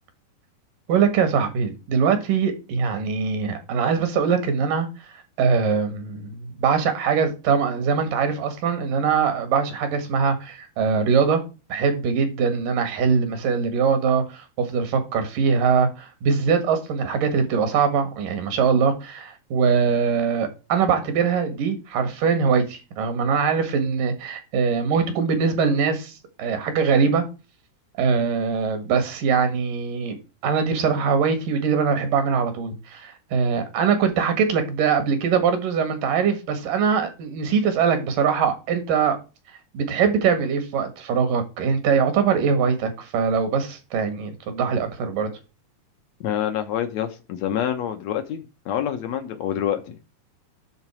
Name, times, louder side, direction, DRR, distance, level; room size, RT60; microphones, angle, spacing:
voice 1, 0.9-4.9 5.4-11.4 11.7-27.2 28.0-30.2 30.4-39.2 39.7-45.3, right 6 dB, 80° right, 3.3 m, -22 dB
voice 2, 46.2-50.0, left 10 dB, 70° left, 1.9 m, -27 dB
10.5 x 4.0 x 6.0 m
omnidirectional pair, 3.7 m